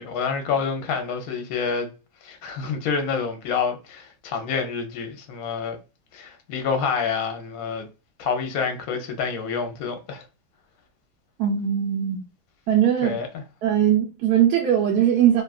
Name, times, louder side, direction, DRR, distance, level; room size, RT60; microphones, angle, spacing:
voice 1, 0.0-1.9 2.2-5.8 6.1-7.9 8.2-10.2 13.0-13.4, left 5 dB, 65° left, 1.0 m, -27 dB
voice 2, 11.4-12.2 12.7-13.2 13.6-15.4, right 10 dB, 70° right, 1.0 m, -20 dB
2.9 x 2.3 x 2.3 m
omnidirectional pair, 1.8 m